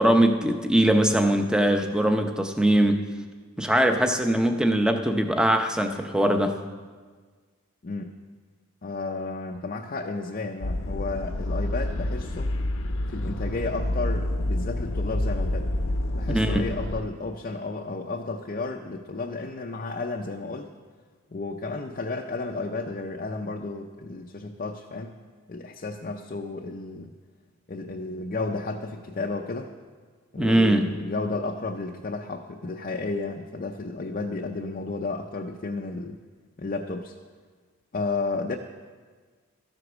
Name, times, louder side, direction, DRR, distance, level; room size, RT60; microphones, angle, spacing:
voice 1, 0.0-3.0 3.6-6.5 16.3-16.6 30.4-30.8, right 1 dB, 5° right, 6 dB, 0.6 m, -21 dB
voice 2, 7.8-8.2 8.8-12.5 13.1-15.7 16.1-20.7 21.3-25.1 25.5-27.1 27.7-29.7 30.3-36.2 36.6-37.1 37.9-38.6, left 3 dB, 40° left, 1 dB, 0.5 m, -32 dB
sound 1, 10.6-17.0, left 1 dB, 65° left, 0.7 m, -28 dB
13.0 x 8.0 x 6.1 m, 1.5 s
head